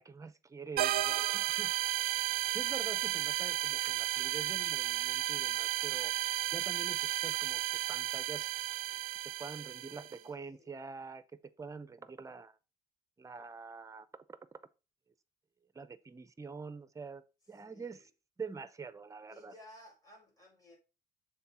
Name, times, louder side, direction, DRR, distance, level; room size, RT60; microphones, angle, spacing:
voice 1, 0.0-1.7 2.5-6.1 6.5-8.5 9.4-11.2 11.6-12.5 13.2-14.1 15.7-17.2 17.5-18.1 18.4-19.5, right 5 dB, 20° right, 0.7 m, -45 dB
sound 1, 0.8-10.1, right 15 dB, 65° right, 0.5 m, -33 dB
voice 2, 1.0-1.5 9.2-10.7 17.6-18.0 19.3-20.8, left 2 dB, 20° left, 4.6 m, -57 dB
7.1 x 3.7 x 5.4 m
cardioid pair, 110°, 17 cm